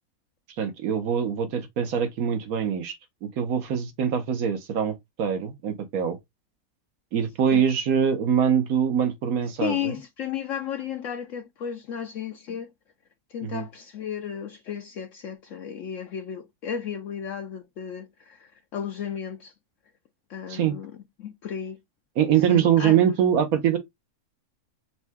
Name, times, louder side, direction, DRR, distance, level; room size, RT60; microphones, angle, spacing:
voice 1, 0.6-2.9 3.2-6.2 7.1-9.9 13.4-13.6 20.5-20.7 22.2-23.8, right 8 dB, 75° right, 1.3 m, -23 dB
voice 2, 9.6-12.7 13.3-19.5 20.3-21.8 22.5-23.0, left 9 dB, 65° left, 0.9 m, -34 dB
5.5 x 2.2 x 3.5 m
omnidirectional pair, 1.5 m